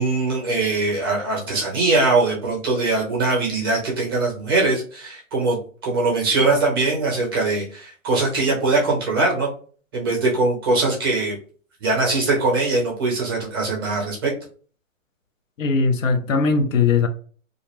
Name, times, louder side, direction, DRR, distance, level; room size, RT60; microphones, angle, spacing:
voice 1, 0.0-9.5 9.9-11.4 11.8-14.3, right 3 dB, 20° right, 0.5 m, -21 dB
voice 2, 15.6-17.1, left 4 dB, 70° left, 0.6 m, -19 dB
2.4 x 2.0 x 2.9 m
hypercardioid pair, 145°, 40 cm